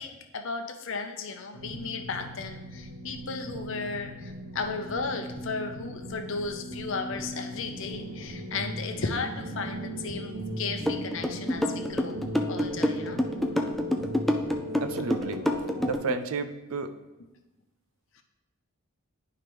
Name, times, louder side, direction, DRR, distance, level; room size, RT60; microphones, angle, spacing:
voice 1, 0.0-12.2 12.5-13.3 18.1-18.2, left 4 dB, 60° left, 6 dB, 0.7 m, -35 dB
sound 1, 1.5-16.0, equal, 50° right, 1.1 m, -38 dB
sound 2, 7.7-14.5, left 1 dB, 25° right, 0.8 m, -45 dB
sound 3, 10.9-16.1, left 1 dB, ahead, 0.3 m, -27 dB
voice 2, 14.8-15.4 15.8-16.9, right 4 dB, 75° right, 9 dB, 0.5 m, -32 dB
10.5 x 4.8 x 3.1 m, 1.1 s
head